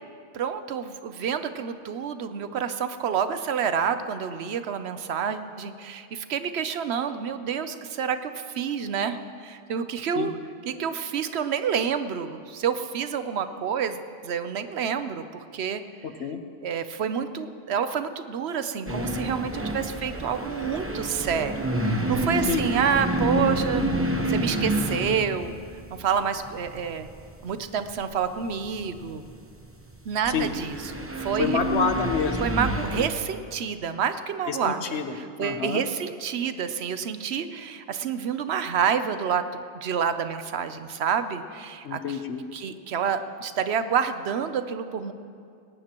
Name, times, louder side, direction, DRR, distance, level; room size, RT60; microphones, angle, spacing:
voice 1, 0.3-10.3 10.7-14.0 14.2-15.8 16.6-25.6 25.9-27.1 27.4-29.3 30.1-31.6 32.4-42.2 42.5-45.1, right 7 dB, 75° right, 10 dB, 1.0 m, -28 dB
voice 2, 16.0-16.4 22.5-22.7 30.3-30.5 31.4-32.5 34.5-35.1 35.4-35.8 41.8-42.4, left 5 dB, 80° left, 7 dB, 1.2 m, -28 dB
sound 1, 18.9-29.9 30.2-33.1, right 1 dB, 15° right, 0.9 m, -29 dB
19.0 x 18.0 x 3.0 m, 2.4 s
omnidirectional pair, 1.1 m